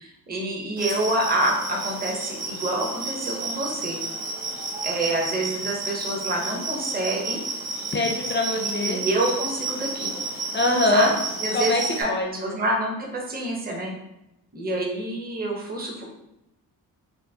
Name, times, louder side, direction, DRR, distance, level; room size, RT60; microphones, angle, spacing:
voice 1, 0.0-4.0 4.8-7.4 8.6-10.1 10.9-11.1 11.4-12.1 12.4-13.9 14.5-16.0, right 1 dB, 25° right, -1 dB, 0.7 m, -27 dB
sound 1, 0.8-12.0, right 3 dB, 80° right, 1.2 m, -31 dB
voice 2, 7.9-9.0 10.5-11.1 11.5-11.8 12.1-12.6, left 2 dB, 30° left, 1 dB, 0.4 m, -23 dB
4.5 x 2.0 x 2.7 m, 0.88 s
wide cardioid pair, 105°, 38 cm